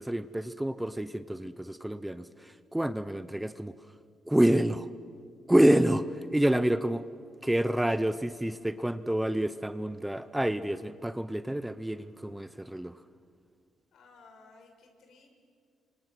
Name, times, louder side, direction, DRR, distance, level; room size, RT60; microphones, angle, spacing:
voice 1, 0.0-3.8 4.3-4.9 5.5-6.0 6.3-7.1 7.4-13.0, right 1 dB, 5° right, 13 dB, 0.7 m, -28 dB
voice 2, 13.9-15.3, left 4 dB, 70° left, 4 dB, 4.6 m, -56 dB
28.0 x 25.0 x 6.2 m, 2.2 s
cardioid pair, 90°, 0 cm